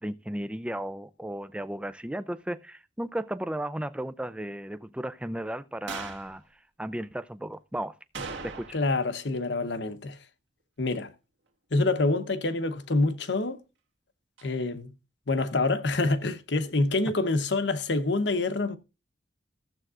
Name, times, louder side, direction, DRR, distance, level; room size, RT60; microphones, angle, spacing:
voice 1, 0.0-6.4 6.8-8.0 8.4-8.8, right 1 dB, 5° right, 0.4 m, -34 dB
sound 1, 5.9-6.3 8.1-9.0 9.3-9.4 14.4-14.5, right 4 dB, 70° right, 1.7 m, -39 dB
voice 2, 8.7-10.2 10.8-11.1 11.7-13.6 14.4-14.9 15.3-18.8, left 2 dB, 60° left, 0.9 m, -26 dB
15.0 x 7.8 x 2.4 m
head